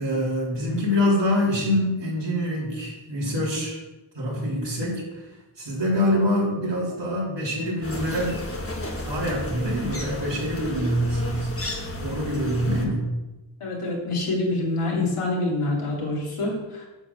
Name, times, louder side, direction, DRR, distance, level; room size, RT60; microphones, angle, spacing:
voice 1, 0.0-3.8 4.2-8.4 9.1-11.5 12.0-13.1, left 1 dB, 60° right, -5 dB, 3.4 m, -25 dB
sound 1, 7.8-12.9, left 1 dB, 25° left, 1.4 m, -33 dB
voice 2, 13.6-16.9, left 2 dB, 85° left, -2 dB, 2.5 m, -26 dB
8.7 x 4.3 x 7.0 m, 1.1 s
wide cardioid pair, 85°, 49 cm